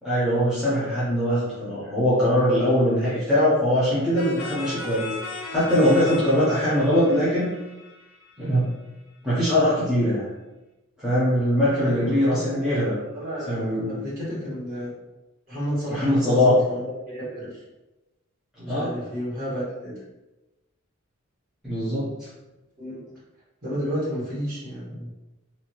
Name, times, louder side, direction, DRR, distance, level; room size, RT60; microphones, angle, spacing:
voice 1, 0.0-5.1 5.5-7.5 8.4-8.7 9.2-10.3 11.0-12.9 13.5-14.0 15.9-16.5 18.6-18.9 21.6-22.3, equal, ahead, -11 dB, 0.7 m, -22 dB
sound 1, 4.1-8.7, left 3 dB, 85° left, 0.6 m, -37 dB
voice 2, 11.8-12.6 13.1-14.9 15.5-17.6 18.6-19.9 22.8-23.0 23.6-25.1, equal, 40° right, -9 dB, 1.5 m, -32 dB
2.7 x 2.3 x 2.9 m, 1.0 s
head